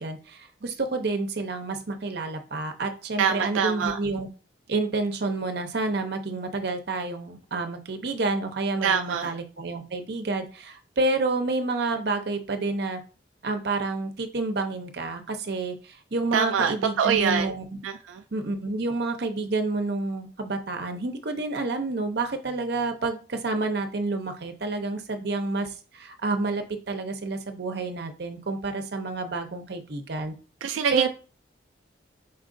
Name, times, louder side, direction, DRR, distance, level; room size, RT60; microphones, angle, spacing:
voice 1, 0.0-4.3 4.7-13.0 13.4-17.6 18.3-30.3 30.9-31.1, right 3 dB, 60° right, 0.7 m, -29 dB
voice 2, 3.2-4.0 8.8-9.3 16.3-17.5 17.8-18.2 30.6-31.1, right 7 dB, 85° right, 0.3 m, -24 dB
4.4 x 2.4 x 3.7 m
head